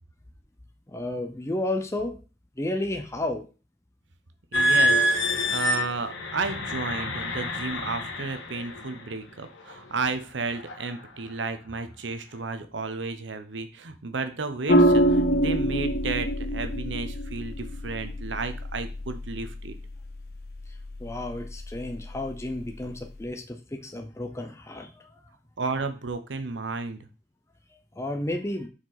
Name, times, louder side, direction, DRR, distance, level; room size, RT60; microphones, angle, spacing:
voice 1, 0.9-2.2 2.6-3.5 20.7-25.3 27.9-28.7, left 1 dB, 15° left, 4 dB, 0.7 m, -32 dB
sound 1, 4.5-9.0 9.7-9.9 10.5-10.9, equal, 85° left, 1.5 m, -26 dB
voice 2, 4.5-19.7 25.6-27.1, right 4 dB, 80° right, 9 dB, 0.8 m, -33 dB
sound 2, 14.7-23.2, right 1 dB, 55° left, 0.8 m, -27 dB
6.3 x 4.7 x 4.1 m, 0.34 s
head